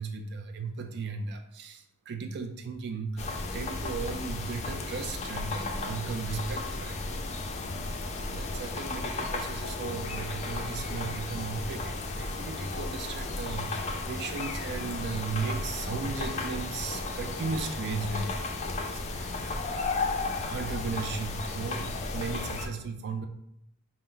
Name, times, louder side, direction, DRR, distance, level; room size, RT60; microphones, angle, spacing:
voice 1, 0.0-7.0 7.6-18.3 18.8-23.3, right 4 dB, 50° right, 5 dB, 0.4 m, -36 dB
sound 1, 3.2-22.7, left 3 dB, 30° left, 0.4 m, -34 dB
4.3 x 2.0 x 3.8 m, 0.74 s
head